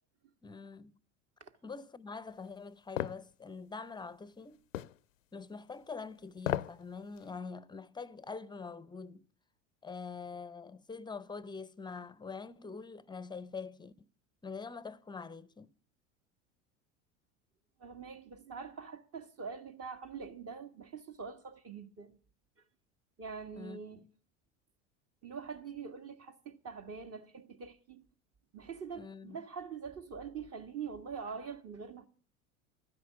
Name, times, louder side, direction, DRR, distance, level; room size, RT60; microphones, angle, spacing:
voice 1, 0.4-0.9 1.6-4.6 5.3-9.2 9.8-14.1 14.4-15.7 23.5-24.1 29.0-29.4, left 5 dB, 10° left, 0.6 m, -44 dB
sound 1, 3.0-3.2 4.7-5.0 6.4-6.8 7.2-7.3, left 13 dB, 90° left, 0.6 m, -34 dB
voice 2, 17.8-22.2 23.2-24.0 25.2-28.1 28.5-32.1, right 6 dB, 40° right, 1.7 m, -44 dB
13.0 x 10.0 x 8.4 m
hypercardioid pair, 80°, 38 cm